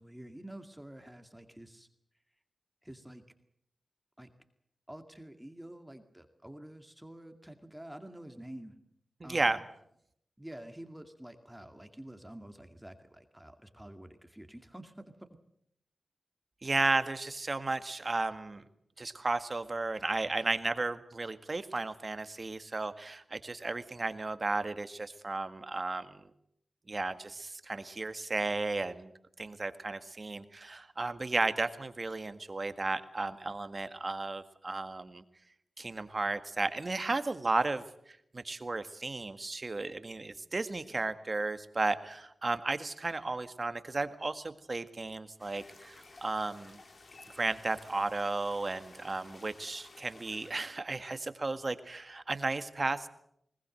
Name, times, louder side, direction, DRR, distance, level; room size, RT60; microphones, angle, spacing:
voice 1, 0.0-1.9 2.8-3.2 4.2-4.3 4.9-8.7 9.2-9.6 10.4-15.3, right 1 dB, 10° right, 7 dB, 2.1 m, -48 dB
voice 2, 9.2-9.6 16.6-18.6 19.0-26.3 26.9-29.1 29.4-35.2 35.8-37.8 38.3-46.8 47.4-53.1, right 3 dB, 45° right, 10 dB, 1.7 m, -34 dB
sound 1, 45.4-50.8, left 3 dB, 60° left, 3.0 m, -55 dB
21.0 x 19.5 x 7.8 m, 0.73 s
cardioid pair, 50°, 0 cm